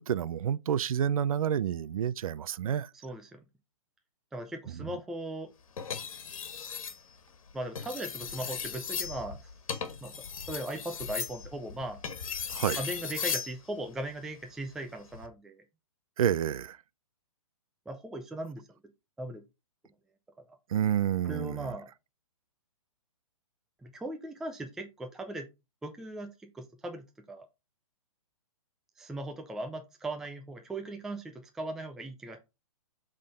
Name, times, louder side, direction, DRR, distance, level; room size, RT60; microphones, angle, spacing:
voice 1, 0.0-2.9 4.7-4.9 12.5-12.8 16.2-16.8 20.7-21.7, right 9 dB, 75° right, 0.5 m, -29 dB
voice 2, 3.0-3.4 4.3-5.5 7.5-9.4 10.0-10.1 10.5-12.0 12.7-15.6 17.9-18.7 19.2-19.4 21.2-21.9 23.8-25.5 25.8-27.5 29.0-32.4, right 1 dB, ahead, 0.4 m, -38 dB
sound 1, 5.8-7.0 7.6-13.5 15.0-15.3, left 6 dB, 70° left, 1.6 m, -37 dB
7.4 x 3.8 x 4.1 m
hypercardioid pair, 155°, 18 cm